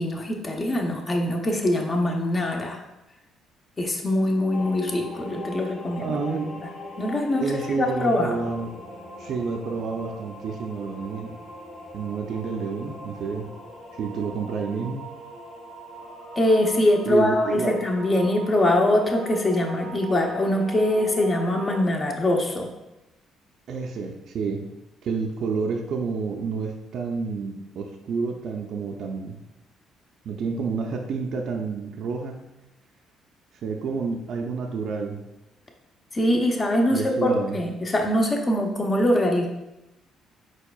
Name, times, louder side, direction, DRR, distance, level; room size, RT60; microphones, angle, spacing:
voice 1, 0.0-2.8 3.8-6.4 7.0-7.5 7.8-8.4 16.4-22.7 36.1-39.5, left 1 dB, 30° left, 2 dB, 0.7 m, -23 dB
sound 1, 4.5-21.8, equal, 45° left, 1.0 m, -40 dB
voice 2, 6.0-6.6 7.4-8.7 9.2-11.4 11.9-13.5 13.9-15.0 17.1-17.8 23.7-24.6 25.0-29.4 30.2-32.4 33.6-35.2 36.9-37.6, right 4 dB, 60° right, 2 dB, 0.5 m, -29 dB
4.7 x 4.5 x 2.3 m, 0.96 s
cardioid pair, 100°, 0 cm